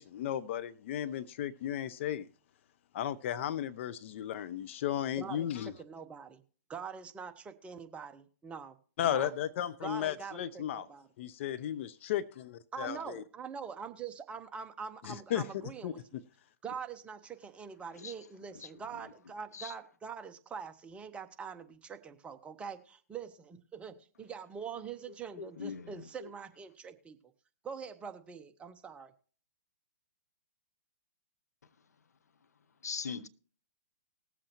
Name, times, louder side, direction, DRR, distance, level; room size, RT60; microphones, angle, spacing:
voice 1, 0.0-2.3 2.9-5.7 9.0-10.9 11.2-13.2 15.0-15.4 15.8-15.9, left 10 dB, 45° left, 0.5 m, -35 dB
voice 2, 5.2-5.5 5.8-6.4 6.7-8.8 9.0-9.3 9.8-11.1 12.7-16.2 16.6-27.2 27.6-29.1, right 6 dB, 15° right, 0.8 m, -44 dB
voice 3, 18.5-19.0 19.5-19.7 25.4-26.3 32.8-33.3, left 6 dB, 75° left, 0.8 m, -41 dB
19.5 x 7.6 x 2.9 m
figure-of-eight pair, 120°, 9 cm